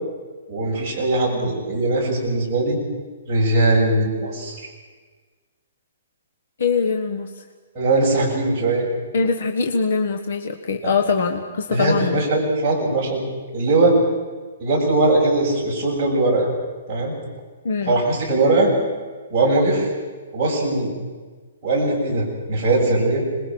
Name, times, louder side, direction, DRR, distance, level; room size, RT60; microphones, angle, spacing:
voice 1, 0.5-2.8 3.3-4.7 7.7-8.9 10.8-10.9 11.7-13.2 13.5-13.9 14.6-16.5 16.9-17.1 17.9-18.7 19.3-19.9 20.3-20.9 21.6-23.2, right 2 dB, 10° right, -9 dB, 6.9 m, -20 dB
voice 2, 6.6-7.4 9.1-12.3 17.6-18.0, left 5 dB, 55° left, 5 dB, 1.5 m, -23 dB
26.5 x 21.0 x 6.2 m, 1.4 s
hypercardioid pair, 175°, 0 cm